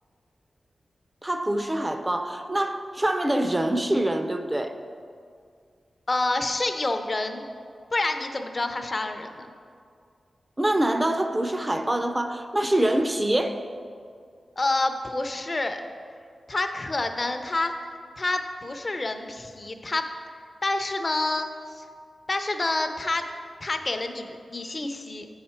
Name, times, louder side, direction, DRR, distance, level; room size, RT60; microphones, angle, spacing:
voice 1, 1.2-4.8 10.6-13.6, right 1 dB, 20° right, 7 dB, 0.5 m, -25 dB
voice 2, 6.1-7.4 7.9-9.5 14.6-15.8 16.5-17.7 18.2-20.1 20.6-21.5 21.7-21.8 22.3-23.2 23.6-25.3, left 2 dB, 40° left, 7 dB, 0.6 m, -28 dB
8.0 x 5.7 x 4.3 m, 2.2 s
wide cardioid pair, 75°, 0 cm